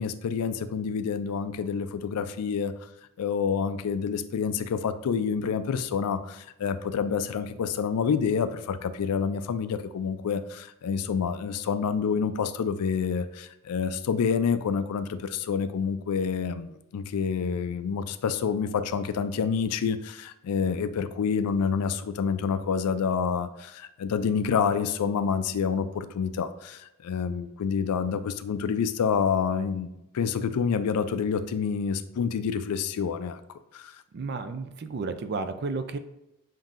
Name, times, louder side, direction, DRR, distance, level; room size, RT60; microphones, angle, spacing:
voice 1, 0.0-2.7 3.2-29.9 30.1-33.4 33.7-33.9, left 6 dB, 90° left, 12 dB, 0.4 m, -28 dB
voice 2, 34.1-36.0, right 4 dB, 45° right, 10 dB, 0.3 m, -32 dB
7.3 x 2.7 x 2.5 m, 0.90 s
head